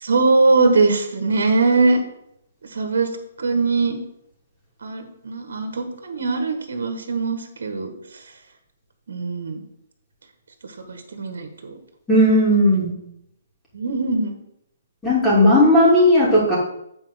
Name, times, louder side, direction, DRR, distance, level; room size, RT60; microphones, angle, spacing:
voice 1, 0.0-2.0 2.7-3.1 3.4-4.0 4.8-7.9 9.1-9.6 10.9-11.8 13.7-14.3, right 3 dB, 75° right, 6 dB, 1.5 m, -21 dB
voice 2, 12.1-12.9 15.0-16.6, left 1 dB, 10° left, -6 dB, 3.0 m, -15 dB
8.8 x 4.3 x 6.3 m, 0.78 s
hypercardioid pair, 160°, 0 cm